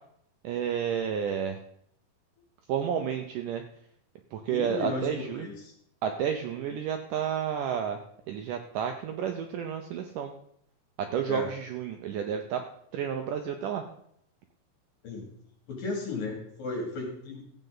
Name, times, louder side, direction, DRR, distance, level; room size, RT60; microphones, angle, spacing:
voice 1, 0.4-1.6 2.7-3.6 4.3-5.5 6.0-8.0 8.3-10.3 11.0-12.6 12.9-13.8, right 8 dB, 80° right, 5 dB, 1.9 m, -31 dB
voice 2, 4.5-5.7 11.3-11.5 15.0-15.3 15.7-17.4, left 3 dB, 65° left, 0 dB, 4.2 m, -35 dB
14.5 x 8.2 x 3.9 m, 0.69 s
omnidirectional pair, 4.5 m